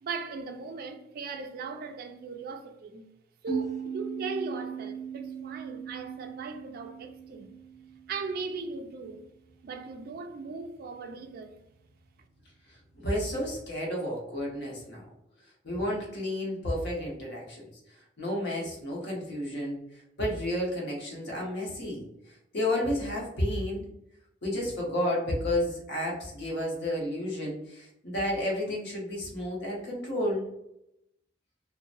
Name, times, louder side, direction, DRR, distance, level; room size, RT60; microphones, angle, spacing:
voice 1, 0.0-3.1 3.4-7.6 8.1-9.3 9.6-11.6, right 4 dB, 50° right, 0.3 m, -38 dB
sound 1, 3.5-8.8, right 6 dB, 35° left, 1.0 m, -38 dB
voice 2, 12.9-15.0 15.6-23.8 24.4-30.5, left 1 dB, 65° left, 1.0 m, -31 dB
2.8 x 2.2 x 2.5 m
head